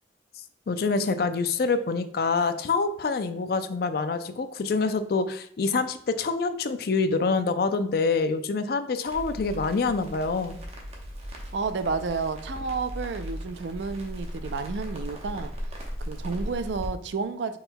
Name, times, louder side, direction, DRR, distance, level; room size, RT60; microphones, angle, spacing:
voice 1, 0.7-10.6, left 4 dB, 60° left, 0.4 m, -26 dB
Crackle, 9.1-16.9, equal, 35° right, 1.0 m, -37 dB
voice 2, 11.5-15.5 16.0-17.6, right 4 dB, 85° right, 0.4 m, -31 dB
5.5 x 4.3 x 2.2 m
head